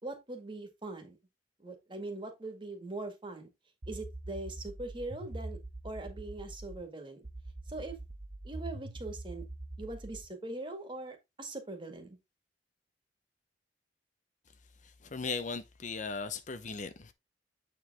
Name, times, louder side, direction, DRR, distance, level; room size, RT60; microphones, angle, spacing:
voice 1, 0.0-1.2 1.6-3.5 3.9-5.6 5.8-7.2 7.7-8.0 8.4-9.4 9.8-12.2, right 2 dB, 30° right, 1.9 m, -41 dB
sound 1, 3.8-6.8 7.2-10.3, right 2 dB, 45° right, 1.1 m, -43 dB
voice 2, 15.0-17.1, left 4 dB, 45° left, 0.7 m, -37 dB
8.2 x 4.7 x 3.6 m
head